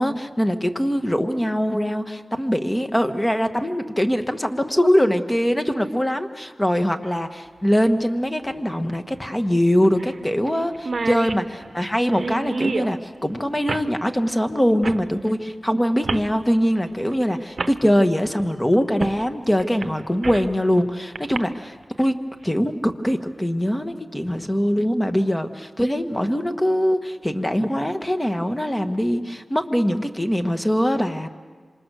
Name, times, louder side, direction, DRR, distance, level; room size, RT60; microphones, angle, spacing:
voice 1, 0.0-22.1 22.4-31.3, equal, 15° left, 7 dB, 1.5 m, -22 dB
sound 1, 7.0-7.1 8.9-9.0 9.3-9.4 10.0-10.2 10.5-10.6 10.7-12.9 13.7-13.9 14.8-15.0 16.0-16.3 17.1-17.2 17.6-17.8 19.0-19.2 19.6-20.5 21.2-21.4, right 3 dB, 65° right, 0.9 m, -28 dB
27.0 x 26.5 x 6.4 m, 1.5 s
wide cardioid pair, 70°, 0 cm